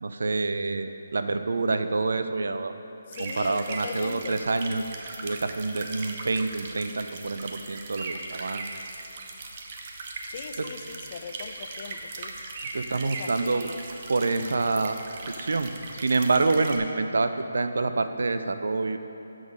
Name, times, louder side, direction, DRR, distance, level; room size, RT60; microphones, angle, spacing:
voice 1, 0.0-2.7 3.2-4.8 5.2-8.7 10.6-10.7 12.7-13.7 14.1-15.0 15.4-19.0, right 3 dB, 70° right, 9 dB, 0.5 m, -27 dB
voice 2, 3.1-4.4 10.3-12.3 13.0-13.6, left 6 dB, 35° left, 9 dB, 0.3 m, -40 dB
sound 1, 3.1-16.8, right 3 dB, 35° right, 0.6 m, -39 dB
7.1 x 6.2 x 5.0 m, 2.8 s
hypercardioid pair, 165°, 0 cm